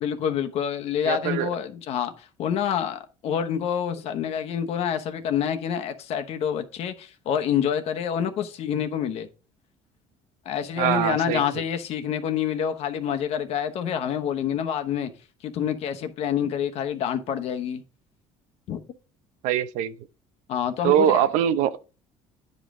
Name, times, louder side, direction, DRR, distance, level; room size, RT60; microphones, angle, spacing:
voice 1, 0.0-2.1 2.4-9.3 10.4-15.1 15.4-17.8 18.7-18.8 20.5-21.2, left 8 dB, 55° left, 1.0 m, -27 dB
voice 2, 1.0-1.5 10.8-11.6 19.4-19.9 20.8-21.8, right 10 dB, 80° right, 0.7 m, -23 dB
9.8 x 5.3 x 3.7 m
cardioid pair, 140°, 12 cm